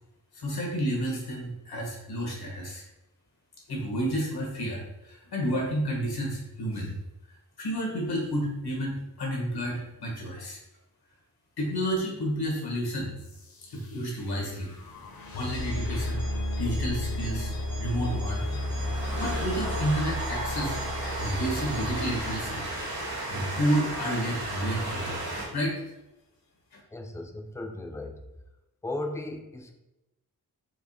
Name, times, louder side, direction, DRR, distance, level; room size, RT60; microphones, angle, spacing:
voice 1, 0.3-2.8 3.7-7.0 7.6-10.6 11.6-13.1 13.7-14.7 15.3-16.2 16.6-17.5 17.8-18.4 19.2-22.6 23.3-25.8 26.7-26.8, equal, 85° left, -1 dB, 1.4 m, -30 dB
sound 1, 13.2-24.0, left 1 dB, 70° left, 0.9 m, -34 dB
Train, 15.7-25.5, right 2 dB, 85° right, 1.6 m, -36 dB
voice 2, 26.9-28.2 28.8-29.7, left 2 dB, 10° left, 5 dB, 0.4 m, -36 dB
4.7 x 2.4 x 4.2 m, 0.96 s
wide cardioid pair, 120°, 37 cm